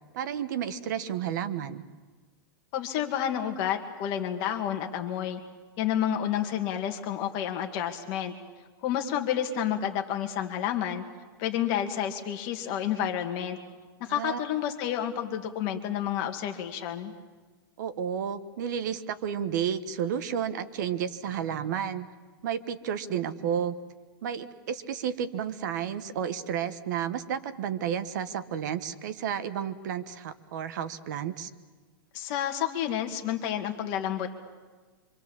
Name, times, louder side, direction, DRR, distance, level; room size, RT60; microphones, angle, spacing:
voice 1, 0.1-1.8 14.1-14.4 17.8-22.1 22.4-23.7 24.2-31.5, right 8 dB, 50° right, 11 dB, 1.2 m, -31 dB
voice 2, 2.7-5.4 5.8-8.3 8.8-11.0 11.4-13.6 14.0-17.1 32.1-34.3, left 10 dB, 30° left, 4 dB, 2.0 m, -30 dB
26.0 x 25.5 x 7.3 m, 1.3 s
supercardioid pair, 175°, 12 cm